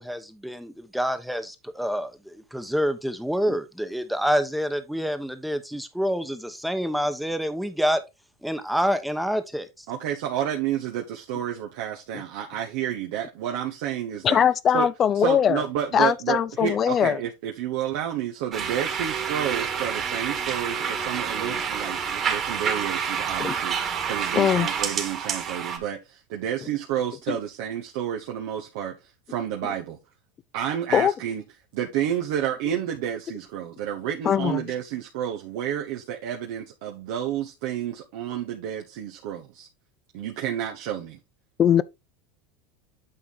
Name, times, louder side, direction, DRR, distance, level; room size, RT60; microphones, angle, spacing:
voice 1, 0.0-8.0 8.4-9.9, equal, ahead, 1.1 m, -27 dB
voice 2, 9.9-14.4 14.7-14.9 15.1-29.0 29.3-30.0 30.5-31.4 31.7-39.7 40.1-41.2, right 10 dB, 70° right, 1.1 m, -30 dB
voice 3, 14.2-15.6 15.9-17.2 23.4-23.5 24.4-24.7 27.3-27.4 30.9-31.1 34.2-34.7 41.6-41.8, left 8 dB, 35° left, 0.5 m, -21 dB
sound 1, 18.5-25.8, right 7 dB, 35° right, 1.9 m, -28 dB
8.9 x 3.7 x 4.1 m
supercardioid pair, 110°, 0 cm